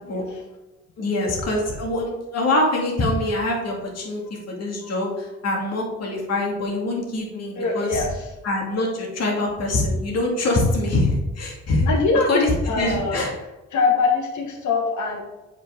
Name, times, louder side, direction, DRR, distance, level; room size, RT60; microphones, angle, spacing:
voice 1, 0.0-0.4 4.2-4.3 4.8-4.9 7.6-8.3 11.9-13.2 13.7-15.2, left 4 dB, 70° left, 2 dB, 1.7 m, -23 dB
voice 2, 1.0-8.0 8.4-11.9 12.3-13.3, left 2 dB, 55° left, -1 dB, 2.3 m, -24 dB
7.5 x 5.3 x 3.7 m, 1.0 s
cardioid pair, 90°, 30 cm